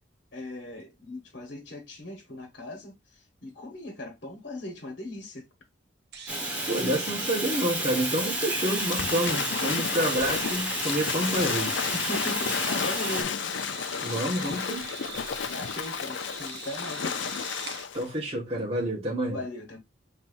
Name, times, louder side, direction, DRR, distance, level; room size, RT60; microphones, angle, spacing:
voice 1, 0.3-5.5 11.9-13.4 15.5-17.3 19.3-19.8, left 1 dB, 60° left, 1.3 m, -38 dB
sound 1, 6.1-17.9, right 5 dB, 60° right, 1.1 m, -42 dB
Fire, 6.3-13.2, right 1 dB, 5° right, 1.2 m, -31 dB
voice 2, 6.7-11.8 14.0-14.9 17.9-19.4, right 1 dB, 35° right, 1.5 m, -28 dB
Waves surf / Splash splatter, 8.8-18.1, left 7 dB, 75° left, 0.5 m, -32 dB
5.4 x 3.2 x 2.5 m
head